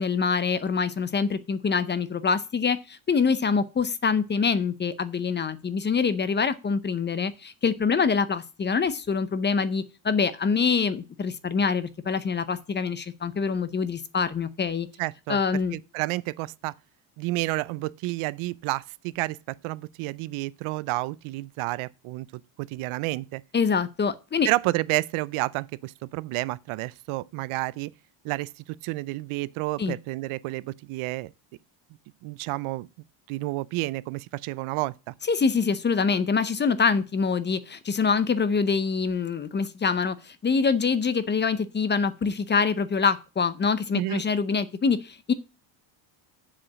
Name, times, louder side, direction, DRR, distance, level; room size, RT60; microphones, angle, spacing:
voice 1, 0.0-14.9 15.3-15.8 23.5-24.5 29.8-30.0 35.3-45.3, left 5 dB, 20° left, 0.6 m, -25 dB
voice 2, 15.0-15.4 15.7-16.7 17.2-23.4 24.4-27.9 28.2-31.3 32.2-32.9 33.3-35.1 43.9-44.2, right 20 dB, 80° right, 0.6 m, -30 dB
7.5 x 5.0 x 7.3 m
cardioid pair, 135°, 50 cm